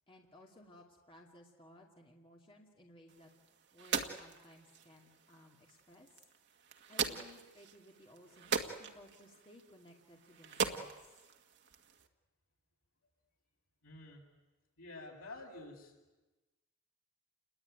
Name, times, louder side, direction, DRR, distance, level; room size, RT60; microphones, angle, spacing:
voice 1, 0.1-3.3 3.7-6.1 6.9-10.9, left 1 dB, 25° left, -1 dB, 2.5 m, -59 dB
sound 1, 3.1-12.1, right 6 dB, 55° right, 1.8 m, -41 dB
voice 2, 13.8-14.2 14.8-15.9, left 2 dB, 80° left, 0 dB, 7.6 m, -49 dB
29.5 x 21.0 x 9.5 m, 1.1 s
head